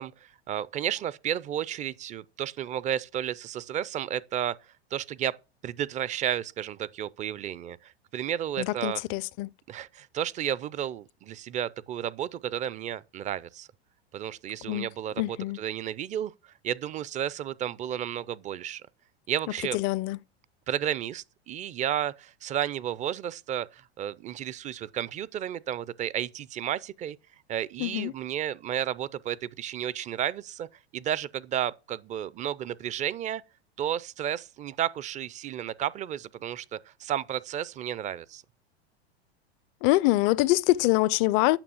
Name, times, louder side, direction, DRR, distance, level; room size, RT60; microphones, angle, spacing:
voice 1, 0.0-4.6 4.9-5.4 5.6-9.0 9.7-13.7 14.1-16.3 16.6-18.8 19.3-19.8 20.7-27.2 27.5-30.7 30.9-33.4 33.8-38.4, right 10 dB, 25° right, 0.4 m, -32 dB
voice 2, 8.6-9.5 14.7-14.9 15.2-15.6 19.7-20.2 27.8-28.1 39.8-41.6, left 19 dB, 40° left, 0.4 m, -24 dB
8.8 x 6.4 x 7.0 m
hypercardioid pair, 100°, 33 cm